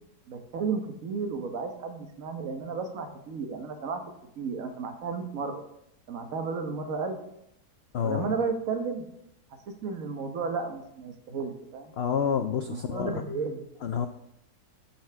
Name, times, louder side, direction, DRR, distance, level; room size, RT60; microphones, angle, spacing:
voice 1, 0.3-4.0 4.4-5.6 6.1-7.2 8.0-9.1 9.7-11.9 12.7-13.7, right 5 dB, 60° right, 5 dB, 1.4 m, -33 dB
voice 2, 7.9-8.2 12.0-13.2 13.8-14.1, left 7 dB, 85° left, 7 dB, 0.5 m, -28 dB
14.0 x 5.8 x 3.4 m, 0.79 s
omnidirectional pair, 1.7 m